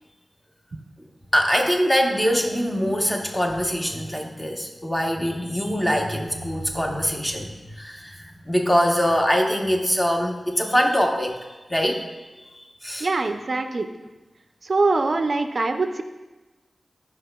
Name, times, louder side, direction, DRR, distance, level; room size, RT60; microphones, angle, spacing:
voice 1, 1.3-12.0 12.5-13.1, equal, 15° left, 1 dB, 0.8 m, -23 dB
voice 2, 13.0-13.9 14.7-16.0, right 3 dB, 55° right, 7 dB, 0.4 m, -23 dB
10.0 x 5.7 x 2.2 m, 1.2 s
wide cardioid pair, 95°, 0 cm